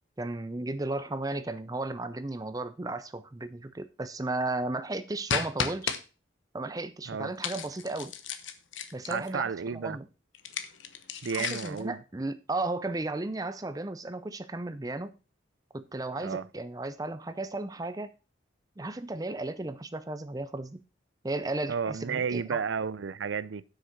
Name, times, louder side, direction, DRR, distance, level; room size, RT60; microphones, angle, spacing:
voice 1, 0.2-5.9 6.5-8.1 8.9-10.0 11.3-15.2 15.7-18.1 18.8-20.8 21.2-22.6, right 2 dB, 20° right, 0.5 m, -34 dB
sound 1, 5.3-6.0 7.4-9.3 10.3-11.8, left 7 dB, 85° left, 1.1 m, -33 dB
voice 2, 9.1-10.0 11.2-12.0 16.2-16.5 21.7-23.6, right 6 dB, 80° right, 0.5 m, -32 dB
7.9 x 6.4 x 5.9 m
head